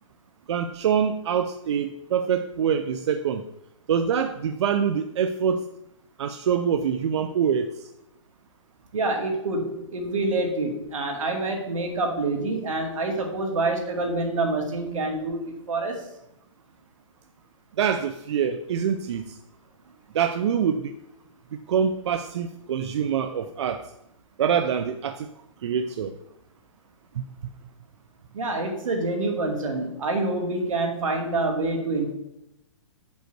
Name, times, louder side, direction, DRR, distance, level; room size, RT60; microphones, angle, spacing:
voice 1, 0.5-3.4 3.9-5.6 6.2-7.7 17.8-19.4 20.1-20.9 21.5-23.8 24.4-25.3 25.6-26.2 27.2-27.3, right 7 dB, 60° right, 8 dB, 0.5 m, -25 dB
voice 2, 8.9-16.0 28.3-32.1, right 2 dB, 90° right, 2 dB, 2.0 m, -27 dB
7.6 x 5.3 x 4.6 m, 0.83 s
hypercardioid pair, 165°, 17 cm